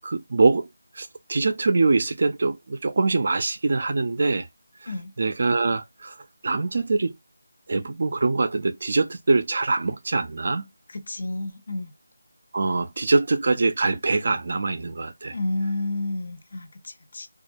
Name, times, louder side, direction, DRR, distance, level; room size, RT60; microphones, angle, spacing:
voice 1, 0.0-0.7 0.9-4.5 5.2-6.2 6.4-7.1 7.7-10.7 12.5-15.3, right 3 dB, 50° right, 0.4 m, -23 dB
voice 2, 10.9-11.9 15.3-17.3, left 2 dB, 50° left, 0.7 m, -30 dB
2.3 x 2.1 x 2.7 m
figure-of-eight pair, 170°, 0 cm